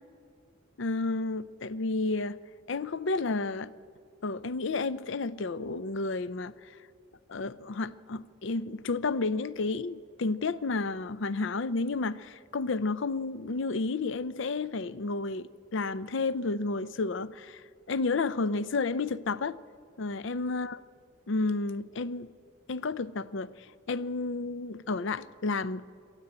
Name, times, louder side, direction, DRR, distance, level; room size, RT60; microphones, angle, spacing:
voice 1, 0.8-2.4 2.7-3.7 4.2-6.5 7.3-17.6 17.9-19.6 20.0-20.8 21.3-22.3 22.7-23.5 23.9-25.9, left 3 dB, 65° left, 0.5 m, -31 dB
23.0 x 14.0 x 8.7 m
head